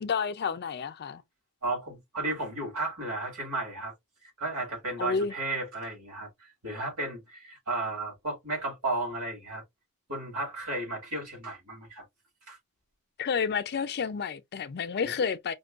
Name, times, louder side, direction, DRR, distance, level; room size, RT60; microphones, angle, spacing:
voice 1, 0.0-1.2 5.0-5.3 13.2-15.5, left 6 dB, 45° left, 0.4 m, -30 dB
voice 2, 1.6-3.9 4.4-9.6 10.1-12.0 12.5-12.6 15.0-15.1, right 2 dB, 70° right, 2.1 m, -34 dB
5.1 x 2.2 x 2.4 m
head